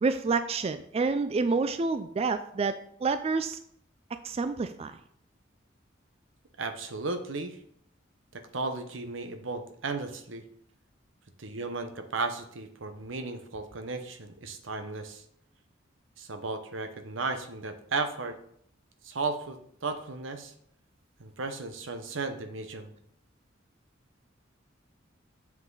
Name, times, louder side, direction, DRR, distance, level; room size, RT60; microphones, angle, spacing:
voice 1, 0.0-3.6 4.2-5.0, right 4 dB, 30° right, 10 dB, 0.3 m, -28 dB
voice 2, 6.6-7.6 8.3-10.4 11.4-15.2 16.2-18.4 19.0-20.5 21.2-22.9, right 3 dB, 85° right, 7 dB, 1.0 m, -35 dB
7.4 x 5.9 x 4.0 m, 0.67 s
head